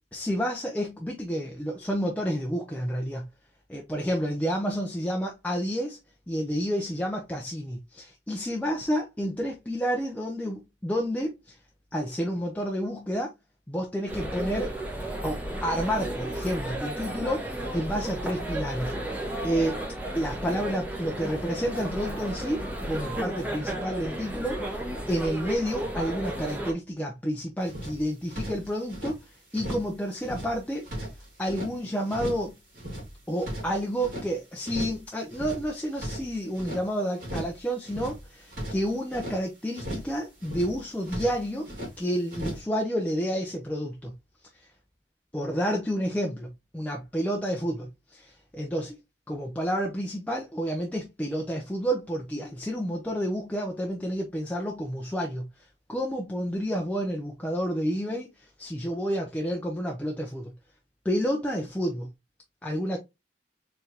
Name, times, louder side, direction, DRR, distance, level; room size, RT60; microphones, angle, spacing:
voice 1, 0.1-3.3 3.7-6.0 6.3-11.6 11.9-13.3 13.7-14.7 15.2-17.5 17.7-18.9 19.4-19.8 20.1-24.6 25.1-29.2 29.5-30.8 31.4-32.6 33.3-41.7 42.0-44.1 45.3-49.0 49.3-55.5 55.9-60.5 61.0-62.1 62.6-63.0, equal, 10° left, 0.5 m, -30 dB
sound 1, 14.1-26.7, right 1 dB, 10° right, 1.3 m, -33 dB
sound 2, 27.6-29.2 29.5-29.9 30.2-31.7 32.1-32.5 32.7-34.3 34.6-35.0 35.3-36.8 37.2-37.6 37.8-39.4 39.7-40.1 40.4-41.9 42.3-42.6, equal, 50° right, 2.3 m, -37 dB
4.5 x 3.3 x 2.8 m
head